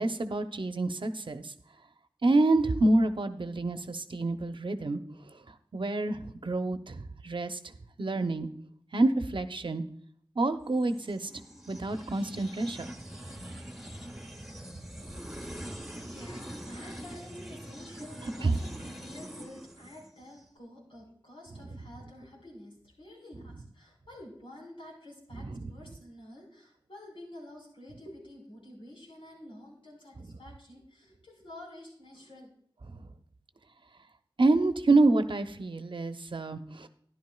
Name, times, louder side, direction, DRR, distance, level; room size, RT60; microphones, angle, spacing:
voice 1, 0.0-1.5 2.2-5.0 5.7-7.0 7.2-7.6 8.0-8.5 8.9-9.8 10.4-11.3 11.7-12.8 18.4-18.5 25.5-25.7 34.4-36.9, right 2 dB, 70° right, 8 dB, 0.7 m, -27 dB
sound 1, 10.7-20.4, right 1 dB, 5° right, 1.3 m, -44 dB
voice 2, 15.8-32.5, left 1 dB, 90° left, -3 dB, 4.8 m, -49 dB
12.5 x 11.0 x 2.3 m, 0.64 s
wide cardioid pair, 60°, 9 cm